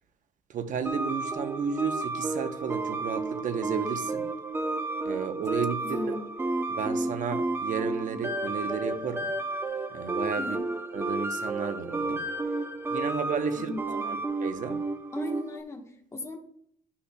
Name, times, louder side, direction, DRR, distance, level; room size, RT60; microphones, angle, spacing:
voice 1, 0.5-4.3 5.0-6.2 6.7-9.3 9.9-10.6 10.9-12.2 12.9-13.7 14.0-14.8, right 6 dB, 50° right, 8 dB, 0.9 m, -33 dB
sound 1, 0.8-15.6, right 2 dB, 15° right, 0.7 m, -32 dB
voice 2, 5.8-6.3 10.4-10.6 13.5-14.3 15.1-16.4, left 2 dB, 15° left, 2 dB, 1.2 m, -38 dB
11.5 x 5.7 x 2.3 m, 0.65 s
cardioid pair, 110°, 17 cm